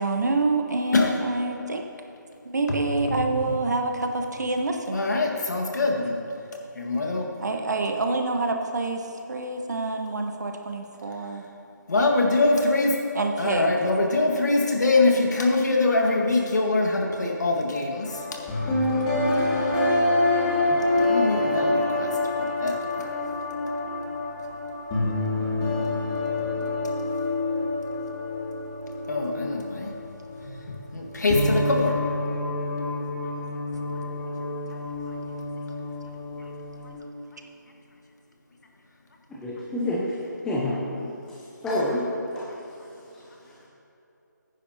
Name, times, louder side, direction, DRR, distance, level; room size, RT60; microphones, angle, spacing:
voice 1, 0.0-1.8 2.4-5.0 7.4-11.4 13.1-13.7, right 3 dB, 60° right, 4 dB, 1.1 m, -27 dB
voice 2, 4.9-6.2 6.7-7.3 11.9-13.0 13.4-18.3 21.1-22.1 22.4-23.2 29.1-29.9 30.4-32.0, left 2 dB, 60° left, 0 dB, 1.7 m, -24 dB
sound 1, 18.0-30.6 30.9-36.9, left 2 dB, 20° left, 1.9 m, -27 dB
voice 3, 39.3-40.1 40.4-40.8 41.3-41.4 41.6-42.1 42.3-42.5, left 1 dB, 5° left, -7 dB, 0.6 m, -27 dB
16.5 x 9.9 x 2.8 m, 2.9 s
figure-of-eight pair, 160°, 10 cm